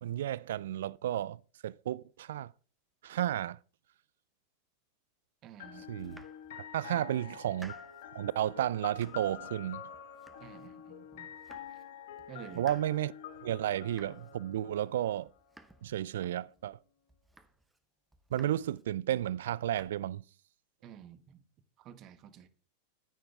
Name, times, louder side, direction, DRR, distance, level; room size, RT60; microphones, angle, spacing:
voice 1, 0.0-2.5 3.0-3.6 5.9-6.2 6.5-7.7 8.1-9.8 12.6-13.1 13.4-15.3 15.8-16.8 18.3-20.2, right 12 dB, 75° right, 0.3 m, -33 dB
voice 2, 5.4-5.9 6.9-7.4 10.4-11.3 11.7-11.8 12.3-12.7 20.8-21.4 21.8-22.5, right 10 dB, 45° right, 1.1 m, -51 dB
sound 1, 5.6-15.4, left 9 dB, 70° left, 1.7 m, -47 dB
Domestic sounds home sounds, 5.9-6.8 7.2-8.1 8.5-9.4 9.7-10.8 11.1-11.9 12.2-16.7 17.1-17.8 18.1-18.9 19.2-19.9, right 1 dB, 5° right, 0.9 m, -59 dB
9.1 x 9.1 x 3.5 m
hypercardioid pair, 95°, 0 cm